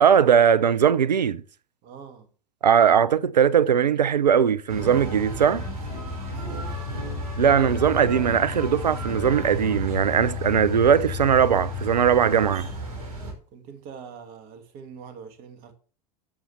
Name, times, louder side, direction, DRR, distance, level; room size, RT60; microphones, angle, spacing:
voice 1, 0.0-1.4 2.6-5.6 7.4-12.7, right 8 dB, 85° right, 0.6 m, -19 dB
voice 2, 1.8-2.3 6.4-6.7 13.5-15.7, right 6 dB, 45° right, 2.2 m, -43 dB
sound 1, 4.7-13.3, left 2 dB, 65° right, 5.1 m, -32 dB
12.0 x 7.5 x 3.4 m
figure-of-eight pair, 85°, 21 cm